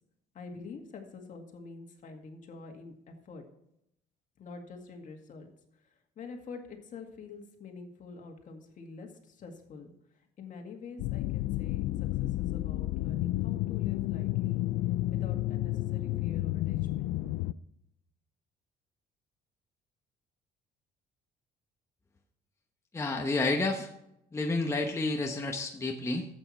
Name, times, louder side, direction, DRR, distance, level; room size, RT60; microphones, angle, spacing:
voice 1, 0.3-3.4 4.4-5.5 5.8-5.9 6.2-9.9 10.4-11.8 12.2-14.7 15.1-17.1, left 4 dB, 50° left, 4 dB, 2.0 m, -46 dB
sound 1, 11.0-17.5, left 16 dB, 85° left, 0.4 m, -31 dB
voice 2, 22.9-23.9 24.3-26.3, left 2 dB, 15° left, 2 dB, 1.0 m, -30 dB
12.0 x 8.2 x 4.3 m, 0.79 s
cardioid pair, 110°, 17 cm